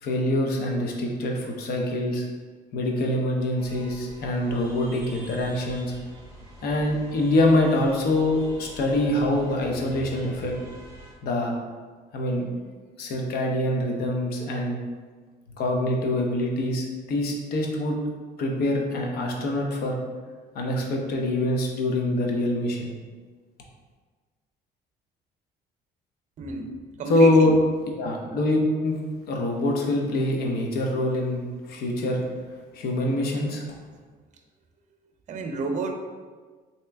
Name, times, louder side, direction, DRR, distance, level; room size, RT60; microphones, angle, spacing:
voice 1, 0.0-2.2 2.7-5.9 6.6-10.6 11.2-11.6 12.1-12.4 13.0-14.8 15.6-18.0 18.4-20.0 20.5-23.0 27.1-27.5 28.0-29.0 29.3-32.2 32.7-33.6, left 1 dB, 65° left, 1 dB, 0.7 m, -24 dB
sound 1, 3.6-11.1, right 1 dB, 20° right, 1.4 m, -45 dB
voice 2, 26.4-27.5 28.2-28.4 35.3-35.9, right 3 dB, 45° right, 4 dB, 0.5 m, -31 dB
3.4 x 2.9 x 3.3 m, 1.5 s
cardioid pair, 110°, 17 cm